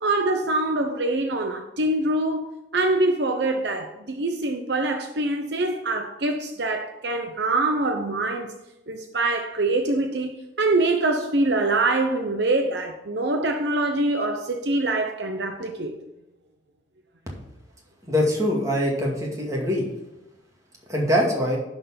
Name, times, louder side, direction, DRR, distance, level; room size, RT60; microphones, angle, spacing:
voice 1, 0.0-8.5 8.9-10.3 10.6-16.0, right 2 dB, 60° right, 0.8 m, -24 dB
voice 2, 18.1-19.8 20.9-21.6, equal, 15° right, 2.1 m, -23 dB
11.0 x 4.5 x 5.8 m
head